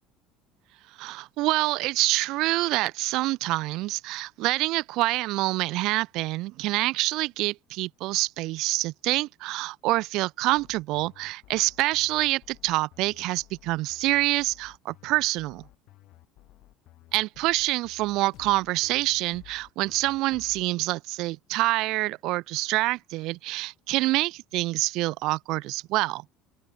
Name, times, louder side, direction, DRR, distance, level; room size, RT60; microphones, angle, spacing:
voice 1, 1.0-15.6 17.1-26.2, right 19 dB, 60° right, 0.3 m, -26 dB
sound 1, 10.5-20.9, left 17 dB, 55° left, 4.2 m, -54 dB
open air
cardioid pair, 140°, 0 cm